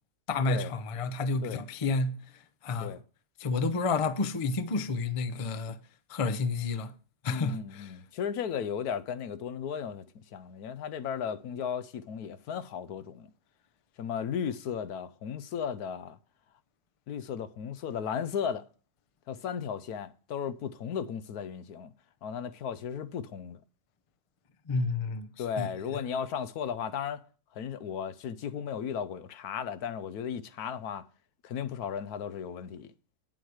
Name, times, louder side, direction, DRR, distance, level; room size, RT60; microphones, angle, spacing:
voice 1, 0.3-2.2 2.6-2.9 3.4-5.8 6.1-6.9 7.2-7.9 24.7-25.3 25.6-25.7, left 3 dB, 35° left, 0.5 m, -30 dB
voice 2, 7.3-13.3 14.0-16.2 17.1-18.7 19.3-21.9 22.2-23.6 25.4-27.2 27.5-31.1 31.4-32.9, left 7 dB, 85° left, 1.3 m, -35 dB
9.5 x 7.5 x 4.8 m
omnidirectional pair, 1.6 m